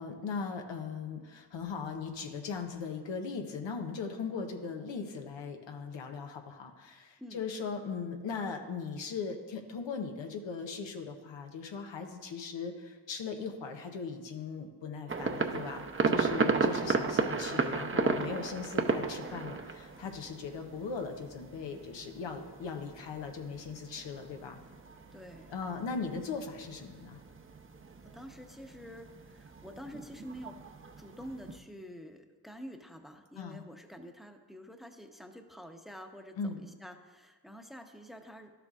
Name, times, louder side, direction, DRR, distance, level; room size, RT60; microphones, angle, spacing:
voice 1, 0.0-24.6 25.5-27.2 33.4-33.6 36.4-36.6, left 5 dB, 90° left, 4 dB, 0.8 m, -39 dB
sound 1, 15.1-31.6, right 4 dB, 30° right, 0.7 m, -35 dB
voice 2, 25.1-25.5 28.0-30.6 31.0-38.5, equal, ahead, 5 dB, 0.8 m, -48 dB
11.5 x 6.8 x 2.4 m, 1.4 s
cardioid pair, 40°, 44 cm